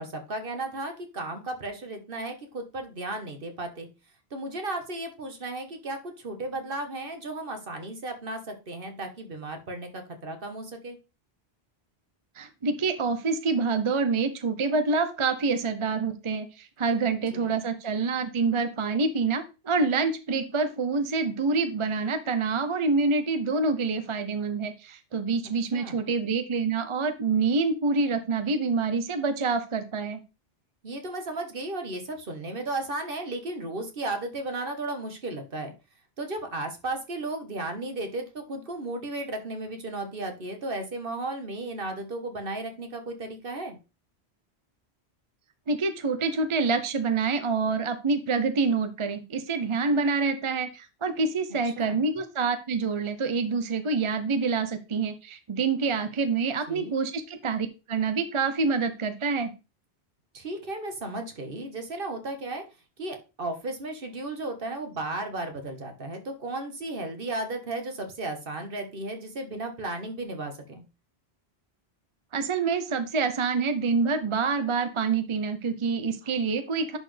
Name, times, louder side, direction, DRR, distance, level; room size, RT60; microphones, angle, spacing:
voice 1, 0.0-3.9 4.3-11.0 17.3-17.6 25.7-26.0 30.8-35.7 36.2-43.8 51.6-52.0 56.7-57.0 60.3-62.6 63.0-70.8, right 2 dB, 60° right, 5 dB, 1.5 m, -34 dB
voice 2, 12.4-30.2 45.7-59.5 72.3-77.0, right 4 dB, 35° right, 9 dB, 0.6 m, -27 dB
10.5 x 4.3 x 3.3 m, 0.30 s
omnidirectional pair, 1.1 m